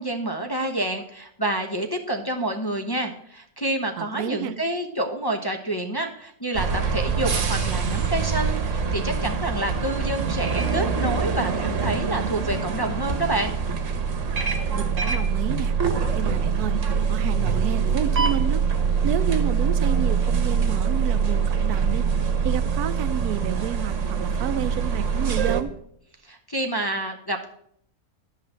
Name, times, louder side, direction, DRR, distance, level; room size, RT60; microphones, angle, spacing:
voice 1, 0.0-13.5 26.3-27.5, right 1 dB, 20° left, 2 dB, 0.8 m, -28 dB
voice 2, 4.0-4.6 14.7-15.7 16.1-16.8 17.1-18.6 19.0-22.0 22.4-25.7, right 10 dB, 85° right, 14 dB, 1.1 m, -30 dB
sound 1, 6.5-25.6, right 6 dB, 55° right, 1.4 m, -24 dB
11.0 x 5.7 x 7.5 m, 0.68 s
omnidirectional pair, 1.6 m